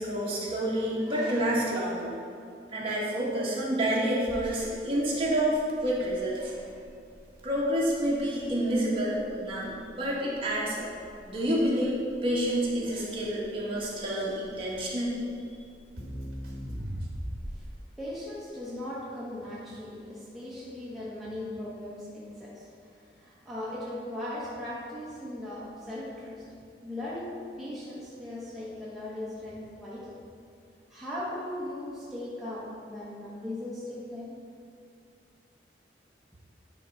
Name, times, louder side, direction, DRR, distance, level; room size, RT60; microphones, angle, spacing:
voice 1, 0.0-2.1 2.7-6.6 7.4-10.9 11.2-11.9 12.2-15.2, right 1 dB, 30° right, -6 dB, 1.6 m, -28 dB
Crackle, 4.3-17.8, equal, 55° right, 1.4 m, -42 dB
voice 2, 18.0-26.5 26.8-30.2 30.9-34.4, left 1 dB, ahead, -8 dB, 1.0 m, -38 dB
9.9 x 3.6 x 5.5 m, 2.5 s
head